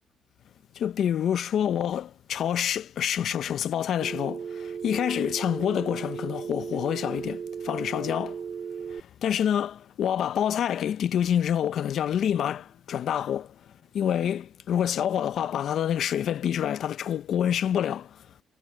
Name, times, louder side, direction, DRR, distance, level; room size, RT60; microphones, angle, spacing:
voice 1, 0.7-8.4 8.9-13.6 13.9-18.4, left 9 dB, 70° left, 0.8 m, -27 dB
Telephone, 4.0-9.0, right 6 dB, 55° right, 1.6 m, -36 dB
cardioid pair, 90°, 0 cm